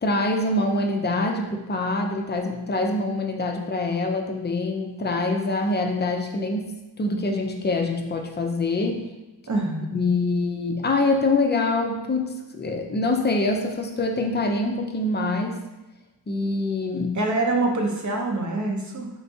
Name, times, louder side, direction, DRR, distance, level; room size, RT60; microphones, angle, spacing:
voice 1, 0.0-6.7 7.0-9.0 9.9-15.6 16.3-17.2, left 2 dB, 25° left, 3 dB, 0.5 m, -25 dB
voice 2, 9.5-9.9 17.1-19.1, right 2 dB, 40° right, 1 dB, 0.8 m, -25 dB
4.5 x 3.3 x 2.7 m, 1.0 s
cardioid pair, 90°, 44 cm